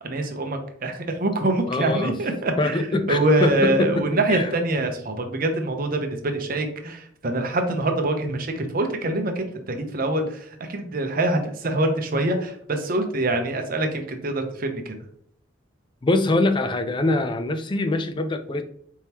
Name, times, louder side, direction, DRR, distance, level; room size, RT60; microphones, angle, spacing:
voice 1, 0.0-2.8 3.1-15.0, right 2 dB, 45° right, 5 dB, 0.7 m, -25 dB
voice 2, 1.7-2.1 2.6-4.5 16.0-18.6, left 2 dB, 25° left, 9 dB, 0.4 m, -23 dB
4.5 x 3.6 x 2.9 m, 0.66 s
head